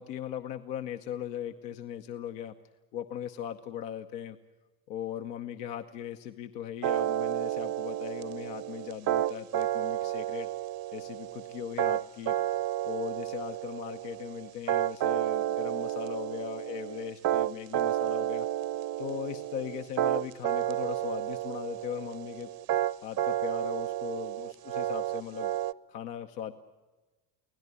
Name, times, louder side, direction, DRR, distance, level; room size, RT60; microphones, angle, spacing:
voice 1, 0.0-2.5 2.9-4.4 4.9-10.5 10.9-12.4 12.8-18.5 19.0-22.5 23.0-25.5 25.9-26.5, left 10 dB, 90° left, 5 dB, 1.0 m, -39 dB
sound 1, 6.8-25.7, right 13 dB, 50° right, 0.7 m, -31 dB
25.0 x 17.0 x 9.8 m, 1.2 s
supercardioid pair, 80°, 47 cm